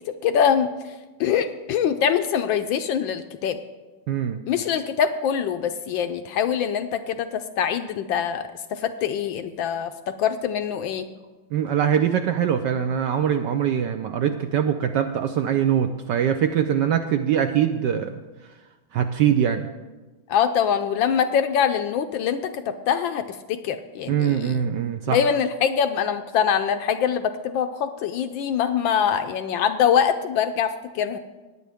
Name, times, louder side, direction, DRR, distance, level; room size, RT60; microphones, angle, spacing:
voice 1, 0.2-0.9 1.2-3.6 4.5-8.4 8.7-11.1 20.3-24.5 25.1-31.2, left 8 dB, 75° left, 9 dB, 1.2 m, -24 dB
voice 2, 4.1-4.4 11.5-18.2 18.9-19.7 24.1-25.2, right 9 dB, 75° right, 7 dB, 1.0 m, -23 dB
18.0 x 9.6 x 3.5 m, 1.2 s
omnidirectional pair, 2.4 m